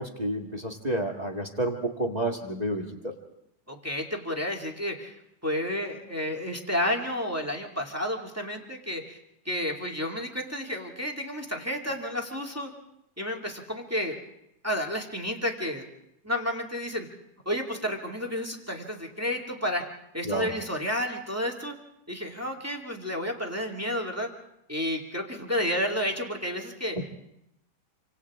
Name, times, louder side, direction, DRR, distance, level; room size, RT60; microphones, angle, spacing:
voice 1, 0.0-3.1 20.2-20.5 27.0-27.1, right 1 dB, 20° right, 2 dB, 1.1 m, -30 dB
voice 2, 3.7-9.2 9.4-12.7 13.2-14.2 14.6-15.9 16.2-17.1 17.4-19.9 20.1-21.7 22.1-24.3 24.7-27.0, equal, 5° right, 1 dB, 1.6 m, -31 dB
28.0 x 26.0 x 3.6 m, 0.81 s
omnidirectional pair, 3.5 m